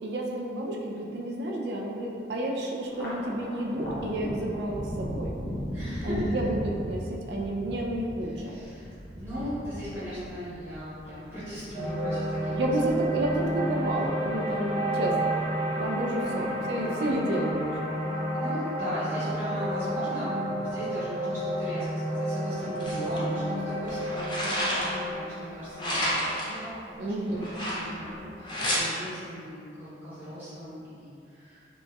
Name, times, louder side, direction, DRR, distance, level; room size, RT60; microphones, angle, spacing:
voice 1, 0.0-5.3 6.0-8.5 12.5-15.3 15.7-17.9 22.9-23.1 27.0-27.5, right 1 dB, 65° right, -1 dB, 0.3 m, -30 dB
Thunder, 2.8-15.5 15.9-16.7 17.0-17.9, equal, 55° left, 0.9 m, -38 dB
voice 2, 5.7-6.2 8.3-12.5 12.9-13.3 16.2-16.4 18.1-31.6, equal, 10° right, -13 dB, 1.2 m, -38 dB
sound 1, 11.7-28.0, right 1 dB, 30° right, 0.9 m, -31 dB
sound 2, 22.8-23.2 23.9-25.1 25.8-26.6 27.4-28.1 28.4-28.8, equal, 25° left, 0.4 m, -30 dB
3.0 x 2.7 x 2.2 m, 2.4 s
head